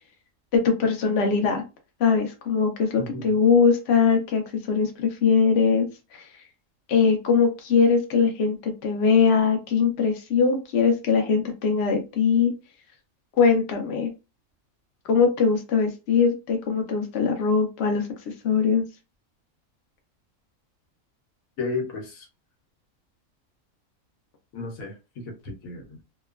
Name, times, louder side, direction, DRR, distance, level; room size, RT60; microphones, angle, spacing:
voice 1, 0.5-1.6 2.0-4.4 4.7-5.9 6.1-6.2 6.9-12.5 13.4-14.1 15.1-18.1 18.4-18.8, left 5 dB, 60° left, 0.9 m, -21 dB
voice 2, 3.0-3.4 21.6-22.3 24.5-26.0, left 3 dB, 85° left, 1.2 m, -33 dB
2.9 x 2.2 x 2.3 m
omnidirectional pair, 1.4 m